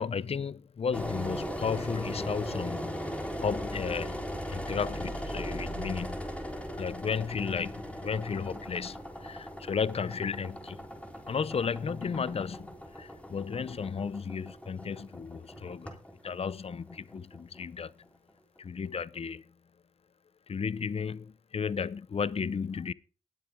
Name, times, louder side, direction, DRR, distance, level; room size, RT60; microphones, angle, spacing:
voice 1, 0.0-3.0 3.4-6.3 6.8-10.8 11.3-16.0 16.2-17.9 18.6-19.5 20.5-22.9, left 6 dB, 45° left, 0.6 m, -34 dB
Engine, 0.9-17.8, equal, 10° left, 3.7 m, -39 dB
19.5 x 7.7 x 3.6 m
supercardioid pair, 50°, 14 cm